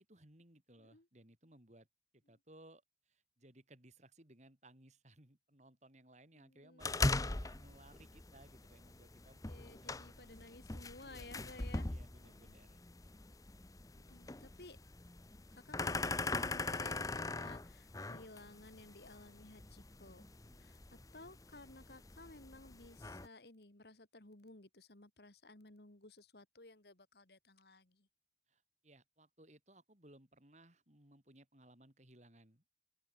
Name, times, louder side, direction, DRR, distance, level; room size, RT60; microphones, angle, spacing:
voice 1, 0.0-1.9 2.1-9.4 9.9-10.3 11.0-11.4 11.9-12.8 20.4-20.8 28.5-32.7, right 1 dB, 40° right, 4.1 m, -62 dB
voice 2, 6.4-6.9 9.5-11.9 13.9-14.8 15.5-20.3 20.6-20.8 21.1-28.1, left 2 dB, 65° left, 2.4 m, -56 dB
sound 1, 6.8-23.3, left 2 dB, 20° left, 0.8 m, -41 dB
open air
head